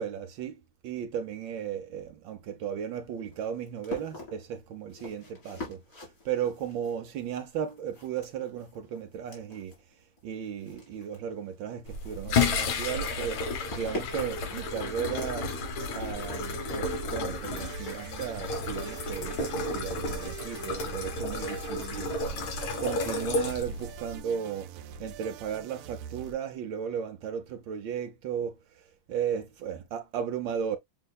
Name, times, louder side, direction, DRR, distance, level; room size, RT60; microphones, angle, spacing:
voice 1, 0.0-9.7 10.2-15.5 15.9-22.2 22.8-30.8, right 8 dB, 75° right, 1.2 m, -35 dB
sound 1, 2.3-18.6, left 2 dB, 40° left, 2.4 m, -47 dB
sound 2, 11.9-24.2, left 3 dB, 70° left, 1.9 m, -32 dB
sound 3, 17.5-26.3, right 9 dB, 90° right, 1.5 m, -45 dB
7.4 x 2.7 x 2.2 m
omnidirectional pair, 2.3 m